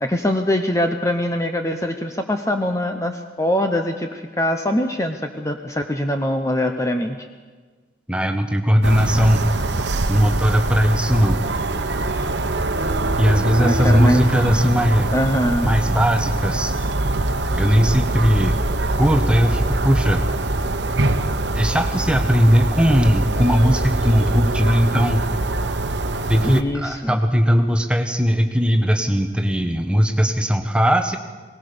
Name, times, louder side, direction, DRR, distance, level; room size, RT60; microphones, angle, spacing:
voice 1, 0.0-7.2 13.6-14.2 15.1-15.7 26.4-27.2, left 1 dB, 15° left, 5 dB, 0.8 m, -23 dB
voice 2, 8.1-9.4 10.1-11.4 13.2-15.2 15.6-16.7 17.6-18.6 18.9-20.2 21.5-25.2 26.3-31.2, equal, 5° right, 5 dB, 1.2 m, -18 dB
sound 1, 8.8-26.6, right 2 dB, 70° right, 1.1 m, -23 dB
21.0 x 18.5 x 6.9 m, 1.4 s
head